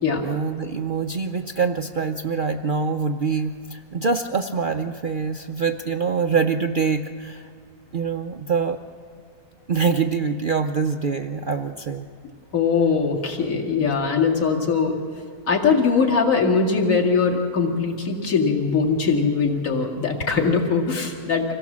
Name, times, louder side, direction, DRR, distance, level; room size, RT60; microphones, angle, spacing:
voice 1, 0.2-7.5 7.9-8.8 9.7-12.1, right 5 dB, 75° right, 6 dB, 0.4 m, -24 dB
voice 2, 12.5-15.0 15.5-21.5, left 5 dB, 55° left, -1 dB, 2.5 m, -21 dB
26.0 x 17.0 x 7.3 m, 2.4 s
omnidirectional pair, 1.7 m